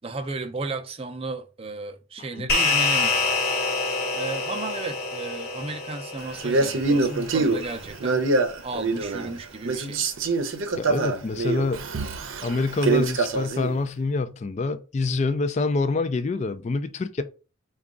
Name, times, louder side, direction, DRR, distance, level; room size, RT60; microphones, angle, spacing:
voice 1, 0.0-3.4 4.1-8.2 8.6-10.0, right 3 dB, 30° right, 0.5 m, -34 dB
voice 2, 2.2-2.5 10.8-11.9 12.4-17.2, left 3 dB, 35° left, 0.3 m, -26 dB
sound 1, 2.5-7.1, left 3 dB, 50° left, 1.1 m, -26 dB
Male speech man speaking, 6.4-9.4 9.6-13.8, right 3 dB, 85° right, 0.6 m, -25 dB
4.8 x 2.3 x 3.7 m
head